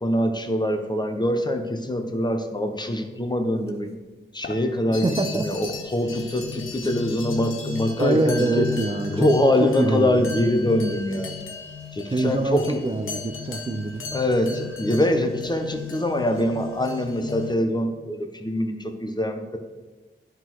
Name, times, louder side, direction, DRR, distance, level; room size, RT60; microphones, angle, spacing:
voice 1, 0.0-3.9 4.3-8.7 9.1-11.3 11.9-12.8 14.1-19.6, left 1 dB, 20° left, 5 dB, 1.0 m, -24 dB
sound 1, 3.7-3.8 4.4-17.6, left 10 dB, 55° left, 0.5 m, -38 dB
sound 2, 4.9-17.5, left 4 dB, 90° left, 1.0 m, -39 dB
voice 2, 5.0-5.4 8.0-9.3 9.6-10.2 12.1-14.1, right 2 dB, 25° right, 6 dB, 0.6 m, -25 dB
10.5 x 3.9 x 4.7 m, 1.3 s
cardioid pair, 45°, 20 cm